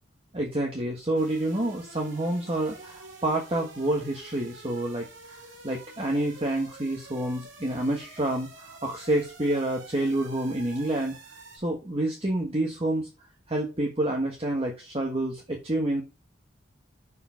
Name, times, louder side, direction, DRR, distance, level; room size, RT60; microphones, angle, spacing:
voice 1, 0.3-5.1 5.6-11.2 11.6-13.1 13.5-16.0, right 1 dB, 30° right, 0 dB, 1.4 m, -28 dB
sound 1, 1.1-11.6, right 3 dB, 75° right, 2.8 m, -48 dB
6.9 x 5.0 x 5.8 m, 0.28 s
head